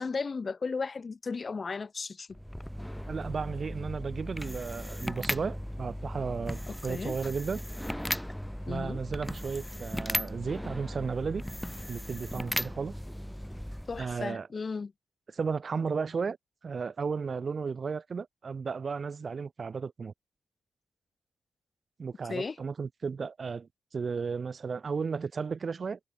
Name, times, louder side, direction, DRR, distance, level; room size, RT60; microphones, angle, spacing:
voice 1, 0.0-2.4 6.7-7.1 8.7-9.0 13.9-14.9 22.3-22.6, left 4 dB, 45° left, 3.0 m, -35 dB
sound 1, 2.3-14.3, equal, 5° left, 1.8 m, -37 dB
voice 2, 3.1-7.6 8.7-11.4 11.9-12.9 14.0-14.5 15.3-16.4 16.6-20.1 22.0-26.0, right 5 dB, 50° right, 2.9 m, -34 dB
cardioid pair, 60°, 0 cm